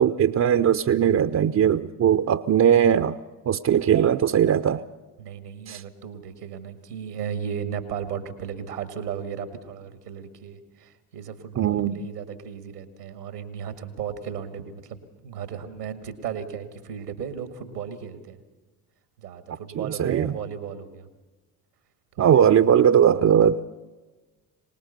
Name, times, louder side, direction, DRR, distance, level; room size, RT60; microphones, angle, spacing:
voice 1, 0.0-3.2 3.5-4.8 5.7-5.8 11.6-12.0 19.8-20.3 22.2-23.7, right 9 dB, 35° right, 0.8 m, -19 dB
voice 2, 5.2-18.4 19.2-21.1 22.2-22.5, right 7 dB, 90° right, 1.9 m, -35 dB
25.0 x 19.0 x 6.7 m
hypercardioid pair, 55°, 45 cm